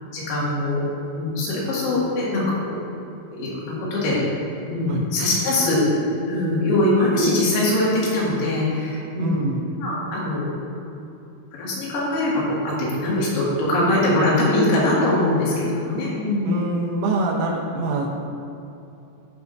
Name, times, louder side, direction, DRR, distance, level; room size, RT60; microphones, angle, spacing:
voice 1, 0.1-0.8 1.2-2.8 3.3-4.2 4.7-5.8 6.2-9.4 9.8-10.6 11.5-16.6, left 1 dB, 90° left, -7 dB, 4.8 m, -22 dB
voice 2, 9.2-9.7 16.4-18.1, right 2 dB, 80° right, -1 dB, 3.4 m, -25 dB
17.0 x 5.9 x 2.7 m, 2.8 s
omnidirectional pair, 5.9 m